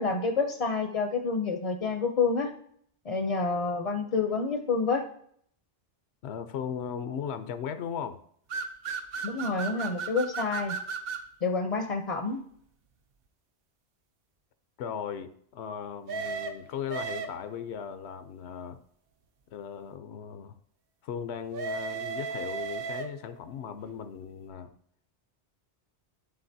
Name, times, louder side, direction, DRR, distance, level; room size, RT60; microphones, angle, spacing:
voice 1, 0.0-2.5 3.1-5.0 9.2-10.8 11.4-12.4, left 4 dB, 45° left, 5 dB, 0.5 m, -28 dB
voice 2, 6.2-8.2 14.8-18.8 19.5-20.6 21.0-24.7, left 7 dB, 85° left, 10 dB, 0.9 m, -37 dB
sound 1, 8.5-11.3 16.1-17.6 21.5-23.4, right 5 dB, 65° right, 0.8 m, -35 dB
11.5 x 3.9 x 2.7 m, 0.63 s
omnidirectional pair, 1.1 m